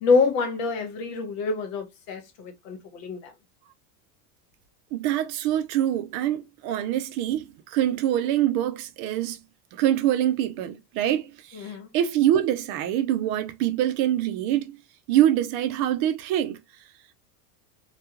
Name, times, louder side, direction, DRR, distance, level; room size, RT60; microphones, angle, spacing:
voice 1, 0.0-3.3 11.5-11.9, left 4 dB, 65° left, 1.1 m, -26 dB
voice 2, 4.9-9.4 9.7-14.7 15.1-16.6, right 12 dB, 50° right, 0.5 m, -25 dB
2.3 x 2.2 x 2.9 m
supercardioid pair, 125°, 49 cm